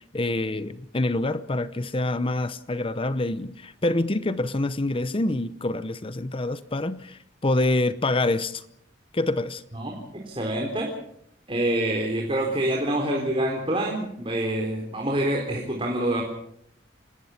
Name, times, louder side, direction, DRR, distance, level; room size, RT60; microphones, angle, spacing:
voice 1, 0.1-8.6 9.1-9.6, left 2 dB, 30° left, 0.8 m, -26 dB
voice 2, 10.2-10.9 11.5-16.2, right 1 dB, 30° right, 4.0 m, -26 dB
27.0 x 19.5 x 5.8 m
head